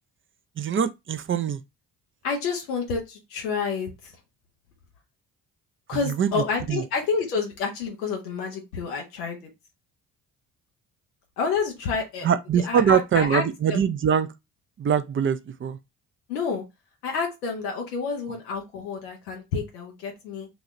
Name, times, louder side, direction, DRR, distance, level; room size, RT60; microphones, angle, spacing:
voice 1, 0.6-1.6 5.9-6.8 12.2-14.3 14.8-15.8, right 8 dB, 30° right, 0.5 m, -23 dB
voice 2, 2.2-3.9 5.9-9.4 11.4-12.3 12.6-13.8 16.3-16.6 17.0-20.5, left 5 dB, 90° left, 0.8 m, -29 dB
4.1 x 2.3 x 3.0 m
hypercardioid pair, 45°, 45 cm